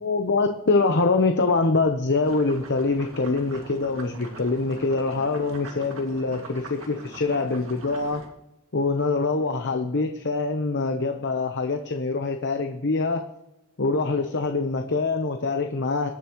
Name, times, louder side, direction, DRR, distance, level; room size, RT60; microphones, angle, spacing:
voice 1, 0.0-8.2 8.7-13.3 13.8-16.1, left 3 dB, 55° left, 6 dB, 0.9 m, -24 dB
sound 1, 2.2-8.3, right 2 dB, 65° right, 1.8 m, -43 dB
23.5 x 10.5 x 3.1 m, 0.90 s
head